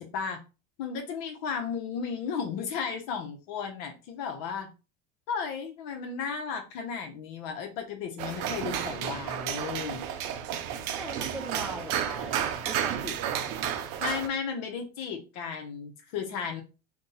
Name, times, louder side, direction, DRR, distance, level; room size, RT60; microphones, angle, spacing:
voice 1, 0.8-4.7 5.3-10.1 14.0-16.6, left 6 dB, 75° left, 0.8 m, -34 dB
sound 1, 8.2-14.3, right 9 dB, 70° right, 0.5 m, -32 dB
voice 2, 10.9-13.9, equal, ahead, 0.5 m, -41 dB
2.6 x 2.3 x 3.9 m
supercardioid pair, 110°, 19 cm